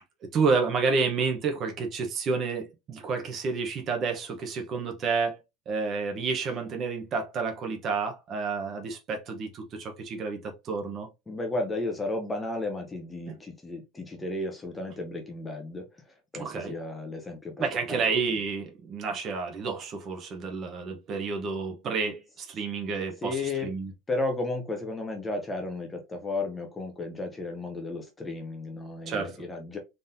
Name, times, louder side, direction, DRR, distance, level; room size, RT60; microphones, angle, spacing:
voice 1, 0.2-5.4 5.7-11.1 13.3-13.4 16.3-16.8 17.6-23.9 29.1-29.4, right 4 dB, 30° right, 0.9 m, -30 dB
voice 2, 11.3-18.0 23.2-23.7 24.1-29.8, left 2 dB, 10° left, 0.7 m, -33 dB
4.0 x 3.7 x 2.6 m
cardioid pair, 175°, 0 cm